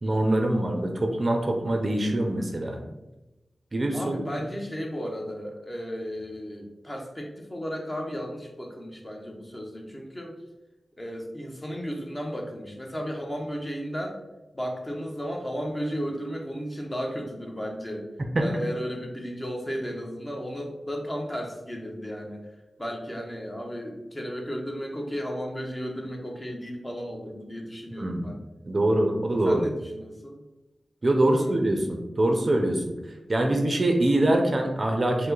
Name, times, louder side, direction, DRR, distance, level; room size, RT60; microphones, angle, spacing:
voice 1, 0.0-2.8 3.7-4.2 18.3-18.4 28.0-28.2 28.7-29.6 31.0-32.8 33.3-35.3, right 1 dB, 40° right, 3 dB, 0.6 m, -24 dB
voice 2, 3.9-10.4 11.0-14.2 14.5-18.1 18.4-28.4 29.4-30.4 31.3-31.6, equal, 20° left, 1 dB, 0.9 m, -34 dB
5.2 x 2.1 x 3.9 m, 1.0 s
wide cardioid pair, 65°, 0 cm